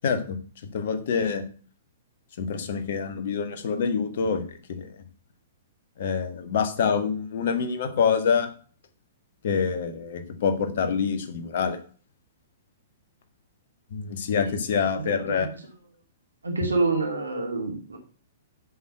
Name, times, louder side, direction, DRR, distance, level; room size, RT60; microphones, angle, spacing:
voice 1, 0.0-0.4 0.7-1.4 2.4-4.9 6.0-8.5 9.4-11.8 13.9-15.5, left 6 dB, 55° left, 7 dB, 1.8 m, -26 dB
voice 2, 15.0-15.5 16.4-18.0, right 3 dB, 75° right, 2 dB, 2.4 m, -27 dB
7.7 x 6.6 x 7.9 m, 0.42 s
figure-of-eight pair, 110°, 0 cm